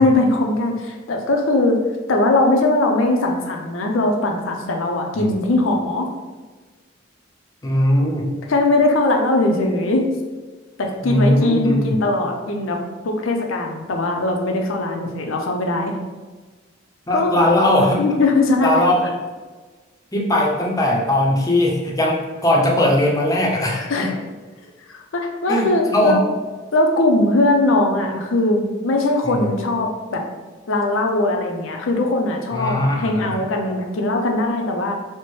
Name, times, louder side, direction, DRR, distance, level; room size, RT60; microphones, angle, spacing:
voice 1, 0.0-1.8 2.1-6.1 8.5-10.1 10.8-16.0 17.1-17.4 18.0-18.7 23.9-24.2 24.9-26.2 26.7-30.3 30.7-35.0, left 2 dB, 80° left, 3 dB, 0.5 m, -20 dB
voice 2, 7.6-8.3 11.0-12.0 17.1-18.0 18.6-19.1 20.1-24.1 25.5-26.2 29.2-29.5 32.5-33.3, left 1 dB, 20° left, -2 dB, 0.5 m, -19 dB
4.3 x 2.1 x 3.0 m, 1.3 s
head